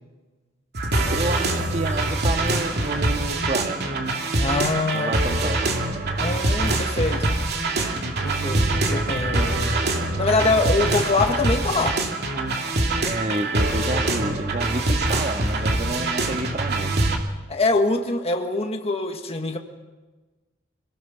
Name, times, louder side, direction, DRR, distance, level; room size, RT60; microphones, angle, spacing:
sound 1, 0.7-17.2, right 2 dB, 55° right, 2.6 m, -24 dB
voice 1, 1.1-4.0 4.9-5.6 13.0-16.9, right 2 dB, 35° right, 6 dB, 1.7 m, -29 dB
voice 2, 4.4-5.1 6.2-7.4 8.2-9.8 10.2-12.0 15.9-16.0 17.5-19.6, left 3 dB, 30° left, 4 dB, 1.6 m, -24 dB
27.0 x 20.0 x 5.8 m, 1.2 s
head